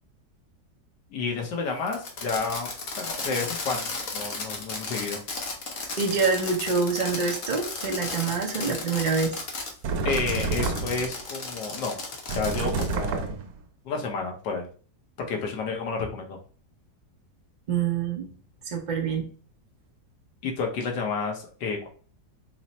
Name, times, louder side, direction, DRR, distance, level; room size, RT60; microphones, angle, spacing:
voice 1, 1.1-2.7 3.0-5.2 10.0-12.0 12.3-13.3 13.8-14.7 15.2-16.4 20.4-21.9, left 4 dB, 75° left, 1 dB, 1.5 m, -30 dB
Fireworks, 1.9-9.7 10.1-13.0, left 3 dB, 55° left, 1.1 m, -34 dB
voice 2, 6.0-9.4 17.7-18.3 18.6-19.3, right 5 dB, 45° right, 1 dB, 0.6 m, -26 dB
sound 1, 9.8-11.2 12.3-13.6, right 4 dB, 85° right, 1.3 m, -29 dB
4.5 x 2.1 x 4.0 m, 0.40 s
omnidirectional pair, 2.0 m